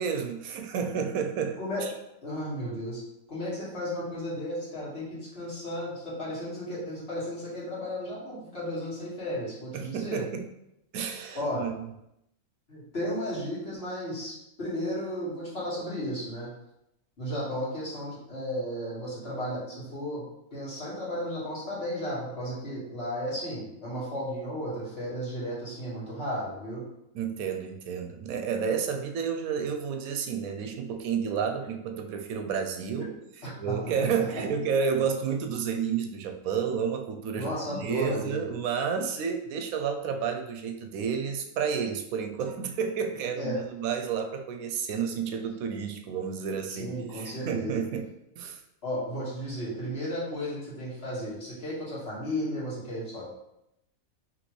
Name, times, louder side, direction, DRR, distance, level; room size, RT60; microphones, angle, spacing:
voice 1, 0.0-1.9 9.7-10.5 10.9-11.7 27.1-33.1 33.4-48.1 48.4-48.6, right 6 dB, 80° right, 5 dB, 1.0 m, -31 dB
voice 2, 2.2-3.0 3.3-10.2 11.3-11.6 12.7-16.5 17.2-20.2 20.5-26.8 33.0-33.1 33.4-33.9 34.2-34.3 37.3-38.5 43.4-43.6 46.7-47.9 48.8-53.2, equal, 45° left, -8 dB, 2.0 m, -34 dB
5.1 x 3.1 x 3.1 m, 0.84 s
omnidirectional pair, 1.5 m